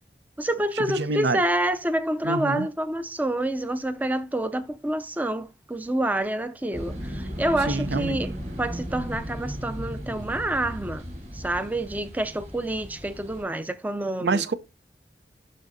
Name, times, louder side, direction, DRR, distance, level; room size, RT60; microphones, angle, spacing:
voice 1, 0.4-8.3 8.6-11.0 11.3-14.5, right 1 dB, 10° right, 0.4 m, -28 dB
voice 2, 0.9-1.4 2.2-2.7 7.7-8.2 14.2-14.5, right 3 dB, 75° right, 0.6 m, -26 dB
sound 1, 6.7-13.4, equal, 40° right, 3.2 m, -36 dB
11.5 x 4.0 x 2.6 m
head